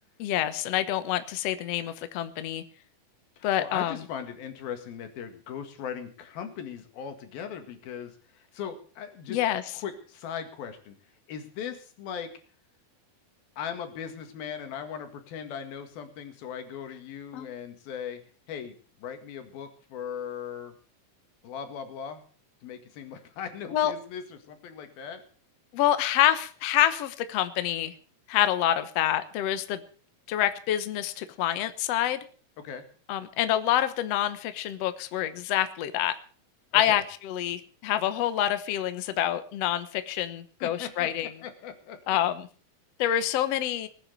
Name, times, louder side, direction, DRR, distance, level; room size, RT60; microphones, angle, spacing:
voice 1, 0.2-2.6 3.4-4.0 9.3-9.6 17.3-17.5 23.7-23.9 25.7-27.9 28.3-29.8 30.3-32.2 33.1-36.1 36.7-41.3 42.1-42.5 43.0-43.9, left 12 dB, 65° left, 11 dB, 1.7 m, -27 dB
voice 2, 3.4-9.4 9.8-11.0 11.3-12.3 13.6-18.2 18.5-20.7 21.4-22.2 22.6-25.2 32.6-32.8 36.7-37.0 40.6-42.0, left 8 dB, 85° left, 7 dB, 3.8 m, -38 dB
19.5 x 9.3 x 6.8 m, 0.42 s
omnidirectional pair, 4.1 m